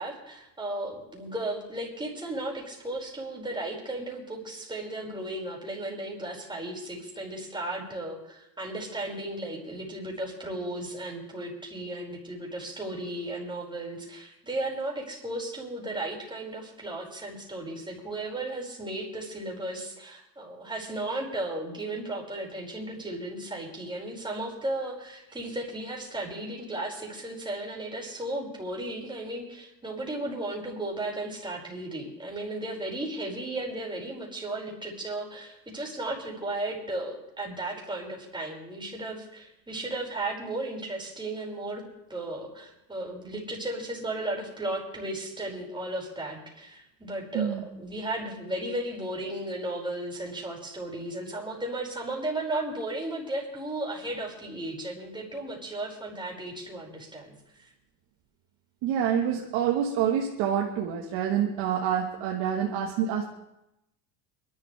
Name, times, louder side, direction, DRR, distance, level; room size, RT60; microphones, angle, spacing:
voice 1, 0.0-41.8 42.1-57.7, right 1 dB, 10° right, -2 dB, 5.5 m, -35 dB
voice 2, 58.8-63.3, right 9 dB, 70° right, 0 dB, 1.7 m, -27 dB
23.5 x 12.0 x 3.4 m, 0.87 s
supercardioid pair, 95°, 42 cm